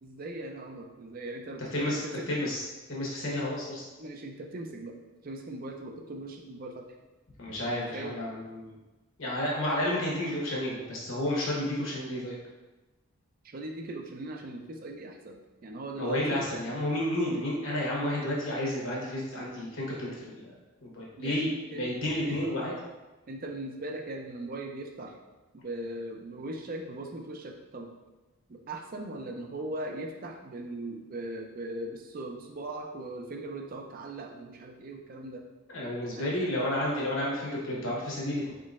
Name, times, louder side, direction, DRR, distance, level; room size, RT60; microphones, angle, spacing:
voice 1, 0.0-2.3 4.0-4.9 5.2-6.9 7.7-8.2 13.4-16.4 21.2-21.9 22.3-22.4 23.3-25.2 25.5-27.9 28.5-35.4 36.1-36.4, right 2 dB, 40° right, 2 dB, 0.4 m, -39 dB
voice 2, 2.3-2.6 2.9-3.8 7.4-8.7 9.2-12.4 16.0-20.5 20.8-22.7 35.7-38.5, left 1 dB, 60° left, -4 dB, 1.1 m, -31 dB
4.3 x 3.7 x 2.5 m, 1.1 s
head